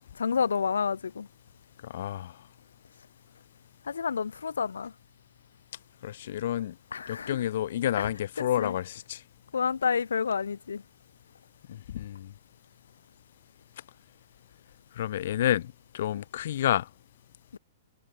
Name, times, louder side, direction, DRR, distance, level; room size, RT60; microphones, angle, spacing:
voice 1, 0.1-1.3 3.9-4.9 6.9-7.4 8.0-8.1 8.6-8.7 9.5-10.8 17.5-17.6, left 6 dB, 75° left, 1.8 m, -29 dB
voice 2, 1.8-2.3 6.0-6.7 7.1-9.2 11.7-12.3 15.0-16.9, left 12 dB, 60° left, 5.1 m, -30 dB
figure-of-eight pair, 110°, 0 cm